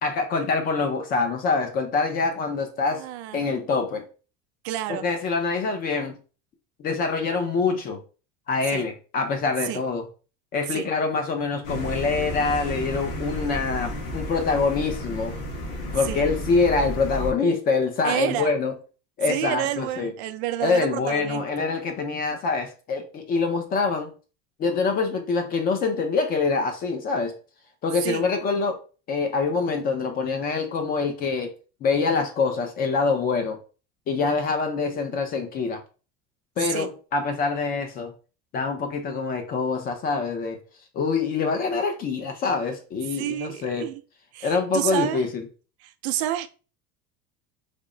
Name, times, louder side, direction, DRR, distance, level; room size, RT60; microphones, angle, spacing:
voice 1, 0.0-3.0 3.3-4.1 4.9-6.2 6.8-8.0 8.5-10.0 10.5-15.4 15.9-18.7 19.2-20.1 20.6-24.1 24.6-27.4 27.8-28.8 29.1-31.5 31.8-33.6 34.1-35.8 36.6-38.1 38.5-40.6 40.9-43.9 44.4-45.5, left 4 dB, 30° left, 0.6 m, -25 dB
voice 2, 2.9-3.7 4.6-5.1 8.7-8.9 9.7-9.8 10.7-10.9 16.0-16.2 18.0-18.5 19.3-21.7 28.0-28.2 36.7-36.9 43.1-44.0 44.3-45.2 45.8-46.5, right 13 dB, 80° right, 0.5 m, -29 dB
sound 1, 11.6-17.3, left 1 dB, 45° left, 1.1 m, -32 dB
3.5 x 2.0 x 3.7 m
cardioid pair, 165°, 32 cm